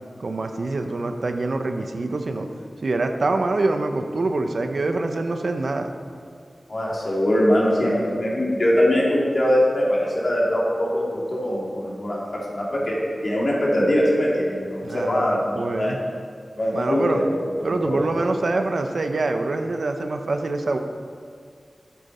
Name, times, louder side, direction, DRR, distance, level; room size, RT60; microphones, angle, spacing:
voice 1, 0.2-2.5 2.8-5.9 14.8-16.0 16.7-17.2 17.6-20.8, right 2 dB, 70° right, 6 dB, 0.8 m, -25 dB
voice 2, 6.7-12.9 13.2-16.0 16.6-17.3 17.6-18.0, equal, 60° left, -5 dB, 3.1 m, -22 dB
12.5 x 8.4 x 4.3 m, 2.1 s
cardioid pair, 50°, 0 cm